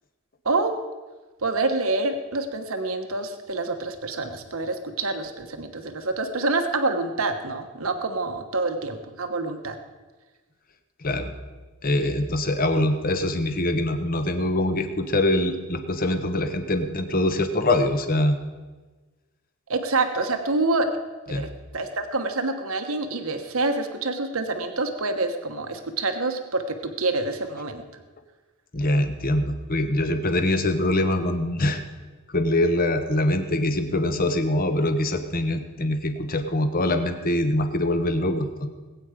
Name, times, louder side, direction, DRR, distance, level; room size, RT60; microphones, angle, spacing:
voice 1, 1.4-9.8 19.7-20.9 21.3-21.5 21.7-27.8, right 3 dB, 65° right, 6 dB, 1.2 m, -27 dB
voice 2, 11.0-11.3 11.8-18.4 21.3-21.5 28.7-31.8 32.3-38.7, left 1 dB, 40° left, 7 dB, 1.2 m, -24 dB
20.5 x 8.8 x 5.1 m, 1.3 s
head